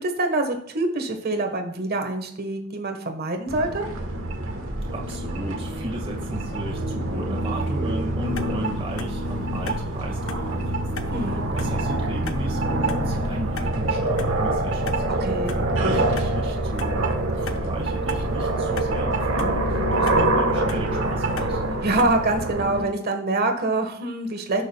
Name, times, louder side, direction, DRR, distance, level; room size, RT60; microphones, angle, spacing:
voice 1, 0.0-3.8 11.1-11.4 15.2-15.6 21.8-24.6, right 2 dB, 50° right, 5 dB, 1.4 m, -25 dB
sound 1, 3.5-22.9, right 2 dB, 75° right, 1.3 m, -25 dB
voice 2, 4.9-10.7 10.9-15.3 15.7-17.1 17.4-21.6, right 1 dB, 30° right, -2 dB, 1.8 m, -35 dB
sound 2, 8.4-22.5, left 3 dB, 80° left, 0.7 m, -39 dB
16.0 x 6.4 x 2.3 m, 0.70 s
head